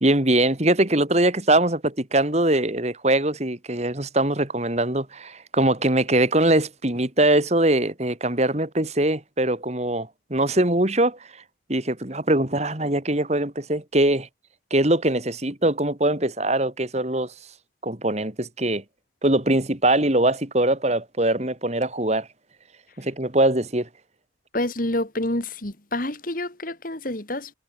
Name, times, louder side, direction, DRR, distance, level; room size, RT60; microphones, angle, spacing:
voice 1, 0.0-11.2 11.7-14.3 14.7-17.3 17.8-18.8 19.2-22.3 23.0-23.9, right 1 dB, 35° right, 2.3 m, -22 dB
voice 2, 24.5-27.5, left 1 dB, 45° left, 2.6 m, -28 dB
head